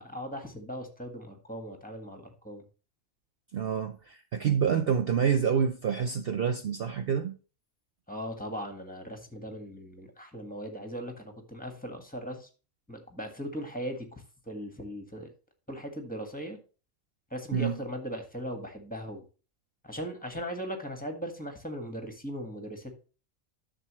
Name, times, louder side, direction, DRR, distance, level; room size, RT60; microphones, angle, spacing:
voice 1, 0.0-2.6 8.1-12.5 12.9-15.3 15.7-16.6 17.3-19.2 19.8-22.9, equal, 5° left, 1.6 m, -38 dB
voice 2, 3.5-7.4 17.5-17.8, right 7 dB, 55° right, 0.7 m, -27 dB
10.5 x 6.9 x 3.1 m
omnidirectional pair, 1.5 m